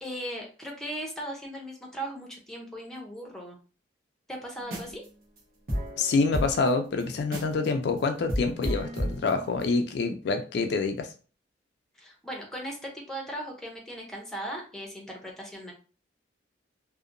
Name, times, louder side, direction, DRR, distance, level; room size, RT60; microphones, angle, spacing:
voice 1, 0.0-3.6 4.3-5.0 12.0-15.7, right 1 dB, ahead, 0 dB, 0.6 m, -38 dB
sound 1, 4.6-5.1 5.4-5.5 5.7-7.7 8.0-8.1 8.3-9.7, equal, 50° right, 1.0 m, -32 dB
voice 2, 6.0-11.1, left 4 dB, 60° left, 6 dB, 0.3 m, -26 dB
2.7 x 2.1 x 2.5 m, 0.37 s
head